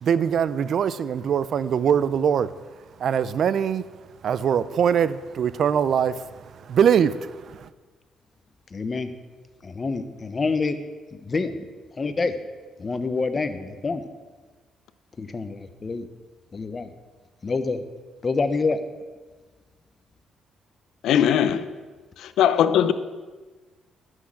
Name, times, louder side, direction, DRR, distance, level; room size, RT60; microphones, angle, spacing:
voice 1, 0.0-3.8 4.2-7.7, right 8 dB, 60° right, 0.5 m, -23 dB
voice 2, 8.7-9.1 9.6-10.8 11.1-11.6 12.0-12.4 12.8-14.0 15.2-16.1 16.5-16.9 17.4-17.8 18.2-18.8, left 4 dB, 35° left, 1.0 m, -27 dB
voice 3, 21.0-21.6 22.2-22.9, left 9 dB, 80° left, 0.7 m, -19 dB
11.5 x 6.4 x 7.7 m
cardioid pair, 90°, 0 cm